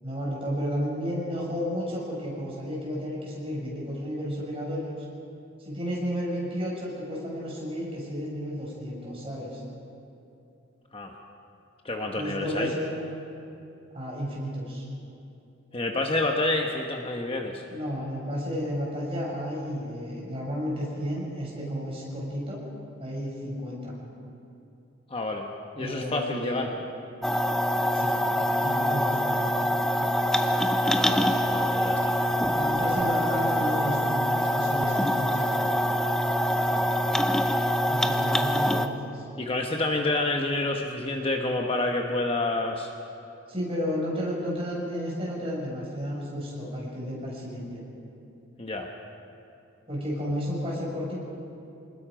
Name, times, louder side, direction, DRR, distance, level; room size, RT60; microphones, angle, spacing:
voice 1, 0.0-5.0 5.6-9.6 12.1-12.9 13.9-14.9 17.7-22.6 23.0-23.9 25.8-26.7 27.9-28.2 28.6-29.6 32.4-35.7 37.9-39.3 43.5-47.8 49.9-51.2, equal, 30° right, -4 dB, 6.2 m, -32 dB
voice 2, 11.8-12.7 15.7-17.6 25.1-25.5 25.8-26.7 30.9-32.1 36.7-36.9 39.4-42.9 48.6-48.9, left 2 dB, 25° left, 2 dB, 1.1 m, -28 dB
sound 1, 27.2-38.9, equal, 5° left, 0.6 m, -25 dB
26.5 x 20.0 x 5.1 m, 2.8 s
head